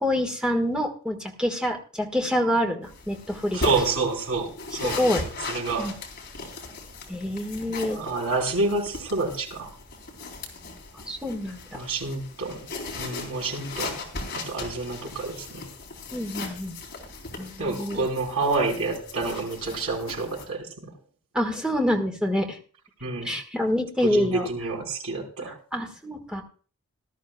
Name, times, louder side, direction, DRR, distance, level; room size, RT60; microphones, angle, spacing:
voice 1, 0.0-3.6 4.7-5.2 5.8-5.9 7.1-8.0 11.1-11.8 16.1-16.8 17.4-18.1 21.3-22.6 23.2-24.5 25.5-26.4, equal, 5° right, 2 dB, 1.6 m, -27 dB
sound 1, 2.8-20.5, left 3 dB, 45° left, 3.7 m, -38 dB
voice 2, 3.5-5.0 5.5-5.9 7.9-9.7 11.7-12.6 12.9-13.9 14.3-15.7 17.6-20.9 23.0-23.3 24.1-25.5, right 3 dB, 75° right, -1 dB, 4.5 m, -28 dB
19.0 x 12.5 x 2.3 m, 0.41 s
head